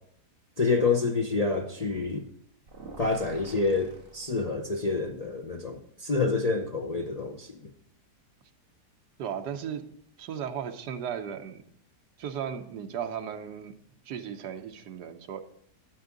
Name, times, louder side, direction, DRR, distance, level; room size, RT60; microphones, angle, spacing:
voice 1, 0.6-2.3 3.0-7.7, left 3 dB, 55° left, 2 dB, 0.4 m, -28 dB
sound 1, 2.7-4.8, right 2 dB, 35° right, 1.7 m, -48 dB
voice 2, 9.2-9.9 10.2-11.6 12.2-13.7 14.0-15.4, right 8 dB, 80° right, 6 dB, 1.4 m, -36 dB
11.5 x 8.4 x 3.9 m, 0.68 s
omnidirectional pair, 1.8 m